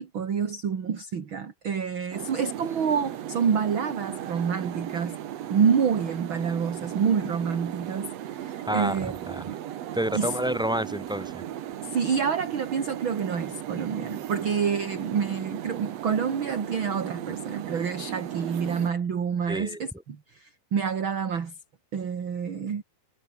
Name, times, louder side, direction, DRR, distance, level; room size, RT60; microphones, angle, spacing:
voice 1, 0.0-5.1 5.5-9.6 10.1-10.4 11.8-21.5 21.9-22.8, right 6 dB, 40° right, 2.2 m, -28 dB
sound 1, 2.1-18.9, right 11 dB, 65° right, 1.7 m, -36 dB
voice 2, 8.6-9.0 9.3-9.4 9.9-11.4 19.5-19.8, right 1 dB, ahead, 6.2 m, -28 dB
omnidirectional pair, 4.5 m